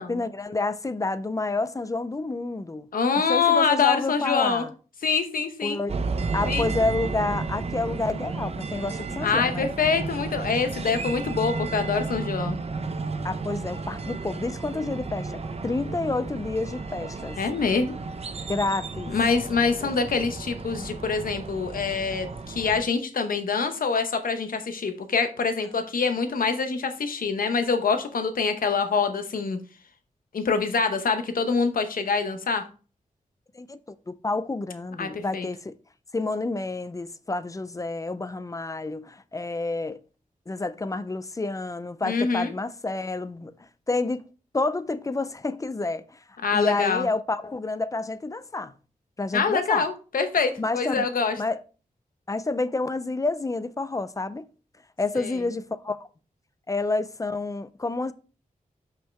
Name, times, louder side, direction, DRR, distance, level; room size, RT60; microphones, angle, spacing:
voice 1, 0.0-2.9 3.3-4.7 5.6-5.9 6.3-9.7 13.2-17.4 18.5-19.1 19.8-19.9 33.5-33.8 34.1-35.7 36.1-40.0 40.5-43.5 43.9-44.2 44.5-46.2 46.5-48.7 49.2-49.8 50.6-51.1 51.4-51.6 52.3-54.5 55.0-56.0 56.7-58.1, left 3 dB, 25° left, 0.4 m, -29 dB
voice 2, 2.9-4.7 5.0-5.8 6.5-6.7 9.2-12.6 17.4-18.0 19.1-29.6 30.3-32.6 35.0-35.5 42.0-42.5 46.4-47.1 49.3-51.3 55.1-55.4, left 5 dB, 90° left, 0.9 m, -25 dB
sound 1, 5.9-22.8, right 4 dB, 45° right, 0.6 m, -33 dB
5.7 x 5.5 x 3.3 m
wide cardioid pair, 110°, 14 cm